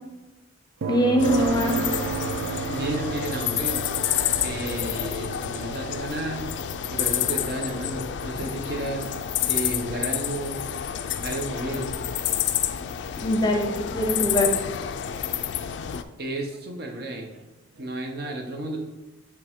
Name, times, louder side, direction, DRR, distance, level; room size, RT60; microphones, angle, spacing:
sound 1, 0.8-14.7 16.9-17.0, right 5 dB, 90° right, 0.4 m, -35 dB
voice 1, 0.9-1.7 13.2-14.5, equal, 20° left, 3 dB, 0.6 m, -23 dB
sound 2, 1.2-16.0, left 10 dB, 65° left, 0.3 m, -29 dB
voice 2, 2.7-3.9 4.4-6.6 6.9-9.1 9.5-10.6 11.2-11.9 16.2-17.3 17.8-18.8, right 1 dB, 55° right, 2 dB, 0.8 m, -32 dB
7.7 x 3.4 x 3.6 m, 1.0 s
head